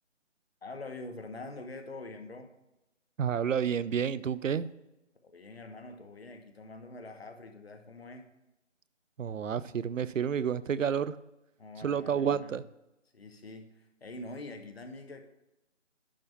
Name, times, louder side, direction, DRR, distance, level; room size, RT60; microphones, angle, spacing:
voice 1, 0.6-2.5 5.2-8.3 11.6-12.6 13.1-15.2, left 2 dB, 55° left, 7 dB, 1.1 m, -45 dB
voice 2, 3.2-4.7 9.2-11.2 11.8-12.6, right 7 dB, 85° right, 17 dB, 0.6 m, -30 dB
10.5 x 3.5 x 6.8 m, 0.92 s
figure-of-eight pair, 170°, 38 cm